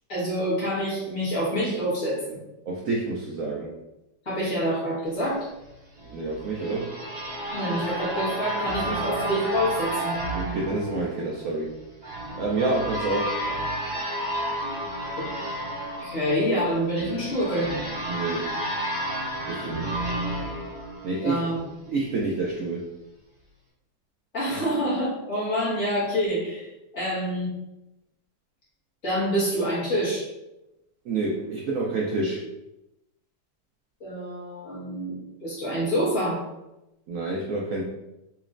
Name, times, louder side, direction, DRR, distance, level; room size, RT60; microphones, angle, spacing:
voice 1, 0.1-2.4 4.3-5.5 7.5-10.2 15.2-15.3 16.0-17.7 21.2-21.6 24.3-26.7 26.9-27.5 29.0-30.3 34.0-36.4, equal, 45° left, -9 dB, 1.8 m, -27 dB
voice 2, 2.7-3.7 6.1-6.9 10.3-11.7 12.4-13.4 18.1-18.5 19.5-20.0 21.0-21.4 21.9-22.9 31.1-32.4 37.1-37.8, right 3 dB, 90° right, -3 dB, 0.7 m, -28 dB
sound 1, 6.0-21.6, right 1 dB, 35° right, 1.8 m, -31 dB
4.1 x 3.0 x 2.5 m, 0.94 s
omnidirectional pair, 2.0 m